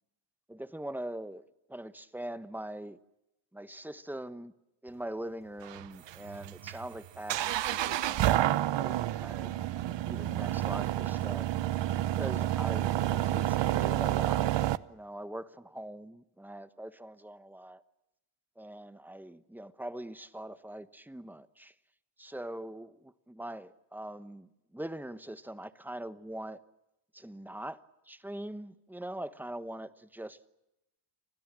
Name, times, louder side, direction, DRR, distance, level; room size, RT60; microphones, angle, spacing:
voice 1, 0.5-1.4 1.7-3.0 3.5-4.5 4.8-9.6 10.0-11.5 12.1-14.5 14.9-17.8 18.6-21.7 22.2-26.6 27.1-27.8 28.1-30.5, right 1 dB, 5° right, 12 dB, 1.1 m, -42 dB
sound 1, 5.6-14.8, right 13 dB, 70° right, 0.9 m, -29 dB
30.0 x 21.0 x 7.5 m, 0.91 s
cardioid pair, 135°, 45 cm